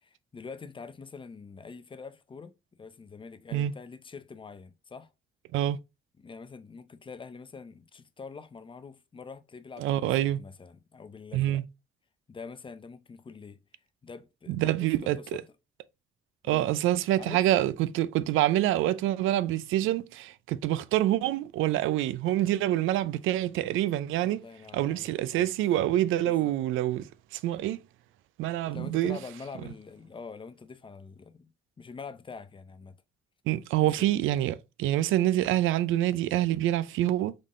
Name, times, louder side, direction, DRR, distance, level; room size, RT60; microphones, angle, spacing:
voice 1, 0.3-5.1 6.2-11.6 12.3-13.6 14.0-15.4 16.4-16.7 17.2-17.4 24.2-25.5 26.2-26.6 28.7-31.5 31.8-33.0 34.0-34.1, left 5 dB, 25° left, 0.5 m, -45 dB
voice 2, 9.8-10.4 11.3-11.6 14.5-15.4 16.4-24.4 24.7-27.8 28.4-29.2 33.5-37.4, right 13 dB, 85° right, 0.4 m, -26 dB
3.8 x 3.6 x 3.7 m
cardioid pair, 90°, 20 cm